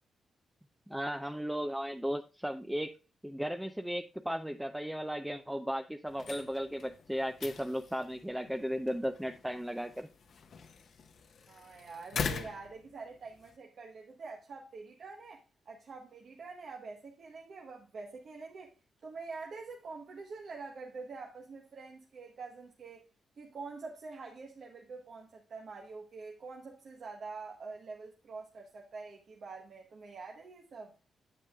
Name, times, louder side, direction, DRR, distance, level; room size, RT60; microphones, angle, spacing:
voice 1, 0.9-3.0 3.2-10.1, equal, 5° right, 0.5 m, -35 dB
sound 1, 6.1-13.6, left 6 dB, 65° left, 0.8 m, -43 dB
voice 2, 11.5-18.7 19.0-23.0 23.4-30.9, right 4 dB, 60° right, 1.1 m, -46 dB
9.0 x 7.9 x 2.3 m
cardioid pair, 80°, 0 cm